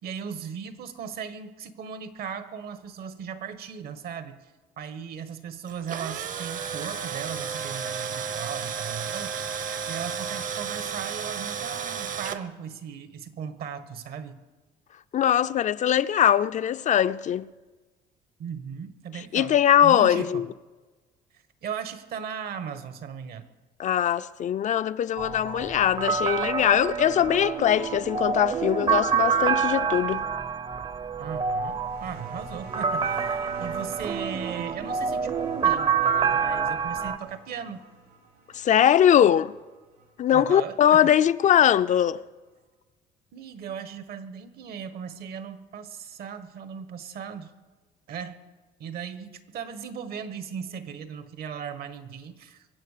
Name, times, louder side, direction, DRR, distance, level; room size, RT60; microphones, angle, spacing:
voice 1, 0.0-4.4 4.8-9.3 9.9-14.4 18.4-19.5 19.8-20.5 21.6-23.5 31.2-37.9 40.3-41.1 43.3-47.5 48.1-48.4 48.8-52.7, right 7 dB, 65° right, 1.5 m, -37 dB
Tools, 5.7-12.4, right 7 dB, 50° right, 1.0 m, -33 dB
voice 2, 15.1-17.5 19.3-20.4 23.8-30.2 38.5-39.5 40.2-42.2, left 10 dB, 45° left, 0.5 m, -21 dB
sound 1, 25.2-37.2, right 6 dB, 30° right, 0.7 m, -27 dB
sound 2, 31.5-40.8 41.9-42.0, right 3 dB, 85° right, 6.1 m, -47 dB
23.5 x 8.1 x 6.7 m
cardioid pair, 110°, 17 cm